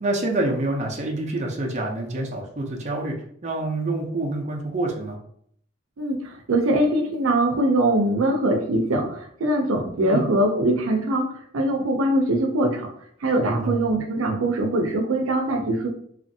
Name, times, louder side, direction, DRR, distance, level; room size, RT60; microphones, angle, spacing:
voice 1, 0.0-3.2 3.4-5.2 10.0-10.3 13.4-13.8, right 2 dB, 35° right, 0 dB, 0.5 m, -27 dB
voice 2, 6.0-12.9 13.2-15.9, right 1 dB, 85° right, 4 dB, 0.5 m, -22 dB
2.9 x 2.5 x 2.6 m, 0.64 s
head